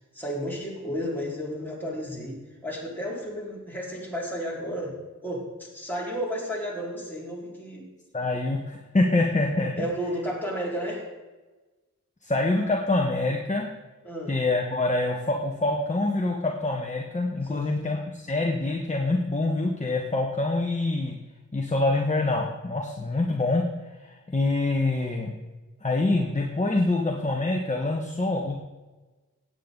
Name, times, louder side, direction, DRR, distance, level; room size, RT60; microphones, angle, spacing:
voice 1, 0.1-5.0 5.2-7.9 9.8-11.1 14.0-14.3 17.4-17.9, equal, 5° left, -5 dB, 4.6 m, -32 dB
voice 2, 8.1-9.7 12.2-13.6 14.3-21.2 21.5-23.6 24.0-25.3 25.8-28.6, left 2 dB, 25° left, 0 dB, 1.4 m, -25 dB
17.0 x 9.0 x 4.0 m, 1.2 s
wide cardioid pair, 95°, 31 cm